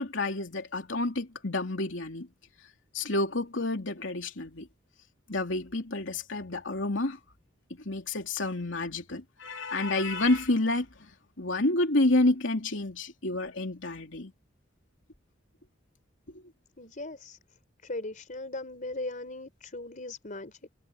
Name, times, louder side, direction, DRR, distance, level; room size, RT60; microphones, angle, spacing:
voice 1, 0.0-2.3 2.9-4.7 5.3-7.2 7.7-11.1 11.4-14.3 16.3-16.4, left 2 dB, 75° left, 3.2 m, -29 dB
voice 2, 16.8-17.4 17.8-20.6, left 2 dB, 45° left, 4.2 m, -38 dB
head